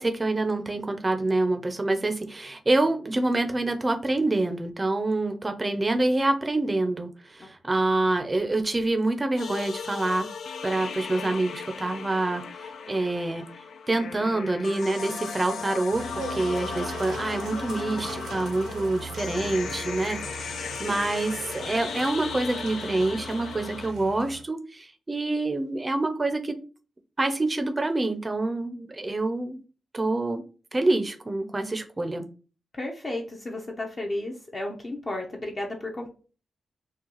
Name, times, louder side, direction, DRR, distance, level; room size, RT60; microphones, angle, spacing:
voice 1, 0.0-10.3 10.6-13.4 13.9-26.6 27.2-29.6 29.9-30.4 30.7-32.3, right 2 dB, 20° right, 7 dB, 0.6 m, -26 dB
sound 1, 9.4-23.9, left 6 dB, 75° left, 0.5 m, -36 dB
sound 2, 15.9-24.4, right 5 dB, 75° right, 0.7 m, -40 dB
voice 2, 32.7-36.1, left 1 dB, 30° left, 0 dB, 0.7 m, -33 dB
6.2 x 2.3 x 2.9 m, 0.36 s
wide cardioid pair, 160°, 0 cm